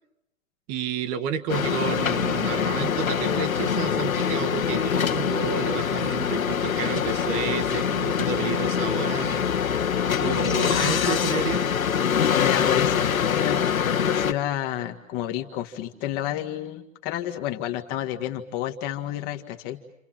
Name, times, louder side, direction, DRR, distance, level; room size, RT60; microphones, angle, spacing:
voice 1, 0.7-9.5 10.2-11.6, right 7 dB, 25° right, 9 dB, 1.6 m, -31 dB
sound 1, 1.5-14.3, left 7 dB, 85° left, 1.8 m, -24 dB
voice 2, 9.9-11.2 12.3-19.8, left 12 dB, 20° left, 5 dB, 1.9 m, -30 dB
30.0 x 26.5 x 7.5 m, 0.85 s
hypercardioid pair, 150°, 40 cm